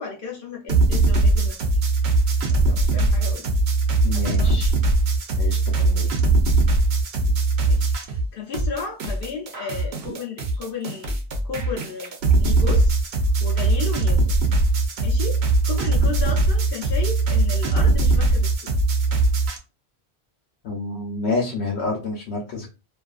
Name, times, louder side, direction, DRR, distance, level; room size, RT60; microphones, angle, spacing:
voice 1, 0.0-1.6 2.2-3.5 4.1-4.6 7.6-11.1 11.4-13.0 13.4-14.4 15.0-18.7, left 5 dB, 65° left, 0 dB, 0.7 m, -34 dB
sound 1, 0.7-8.3 8.5-19.6, right 2 dB, 75° right, 0.9 m, -20 dB
voice 2, 4.0-4.7 5.4-6.1 20.6-22.8, left 3 dB, 85° left, 0 dB, 0.9 m, -28 dB
2.5 x 2.4 x 2.3 m, 0.31 s
omnidirectional pair, 1.1 m